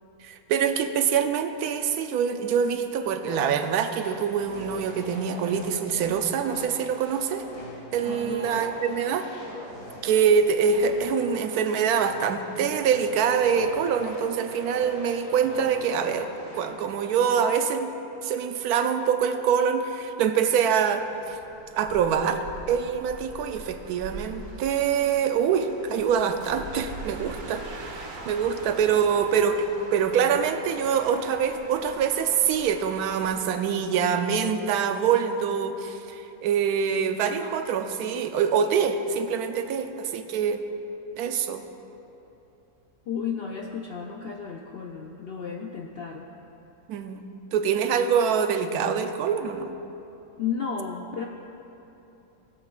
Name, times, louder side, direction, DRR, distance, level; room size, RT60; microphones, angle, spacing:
voice 1, 0.2-7.4 7.9-9.3 10.0-17.9 18.2-21.4 21.7-40.6 41.1-41.6 46.9-47.3 47.5-49.8, right 7 dB, 90° right, 8 dB, 1.1 m, -25 dB
sound 1, 3.3-16.7, left 1 dB, 90° left, 2.1 m, -42 dB
voice 2, 8.1-8.6 43.1-46.3 50.4-51.3, left 6 dB, 70° left, 1 dB, 0.5 m, -33 dB
sound 2, 21.0-33.5, right 2 dB, 65° right, 1.6 m, -43 dB
17.0 x 8.1 x 2.4 m, 3.0 s
omnidirectional pair, 1.6 m